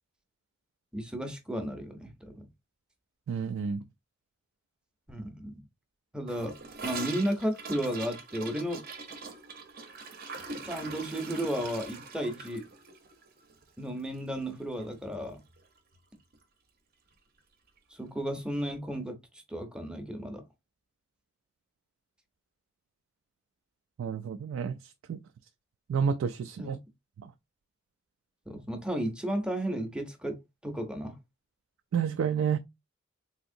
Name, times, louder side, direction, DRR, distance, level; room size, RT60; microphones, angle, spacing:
voice 1, 0.9-2.4 5.1-5.6 6.1-6.5 6.8-8.8 10.6-12.6 13.8-15.4 17.9-20.4 26.6-26.8 28.5-31.1, equal, 5° right, 0.6 m, -34 dB
voice 2, 3.3-3.8 24.0-25.2 25.9-26.8 27.2-27.3 31.9-32.6, right 6 dB, 75° right, 0.3 m, -30 dB
Gurgling / Toilet flush, 6.3-14.5 14.8-14.9 15.2-15.7 15.9-16.0 16.3-16.4 17.4-17.5, right 4 dB, 50° right, 0.7 m, -42 dB
3.5 x 2.8 x 2.6 m
head